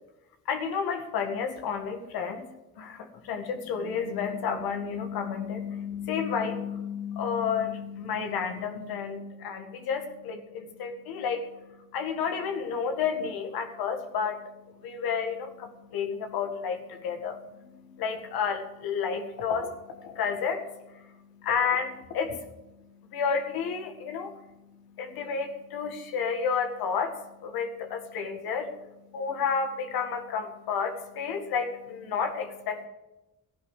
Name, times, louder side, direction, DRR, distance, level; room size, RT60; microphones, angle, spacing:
voice 1, 0.5-2.5 2.8-14.5 14.8-22.5 23.1-28.7 29.1-32.9, left 6 dB, 85° left, 5 dB, 2.1 m, -31 dB
14.5 x 11.0 x 7.5 m, 0.99 s
supercardioid pair, 60°, 36 cm